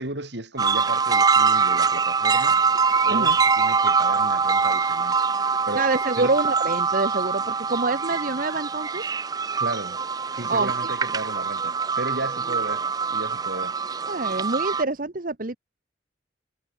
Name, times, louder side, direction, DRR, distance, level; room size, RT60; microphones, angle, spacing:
voice 1, 0.0-2.6 3.0-5.2 5.7-5.8 6.2-6.3 9.6-10.0 10.4-12.9 13.1-13.8, right 2 dB, 70° right, 4.2 m, -34 dB
sound 1, 0.6-14.8, right 5 dB, 20° right, 0.4 m, -23 dB
voice 2, 5.7-9.1 10.5-10.9 11.3-11.4 14.1-15.6, right 3 dB, 50° right, 1.1 m, -26 dB
head